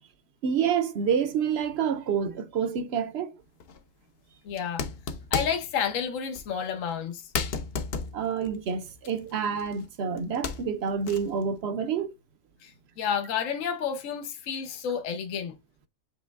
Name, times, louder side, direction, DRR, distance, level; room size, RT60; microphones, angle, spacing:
voice 1, 0.4-3.4 8.1-12.1, right 7 dB, 60° right, 0.8 m, -28 dB
sound 1, 3.6-3.8 4.5-5.7 6.3-6.5 6.9-7.0 7.3-9.9 10.2-11.4, left 5 dB, 55° left, 0.8 m, -34 dB
voice 2, 4.4-4.8 5.3-7.3 12.6-12.7 13.0-15.6, left 7 dB, 75° left, 1.1 m, -30 dB
7.5 x 3.0 x 2.3 m
omnidirectional pair, 1.4 m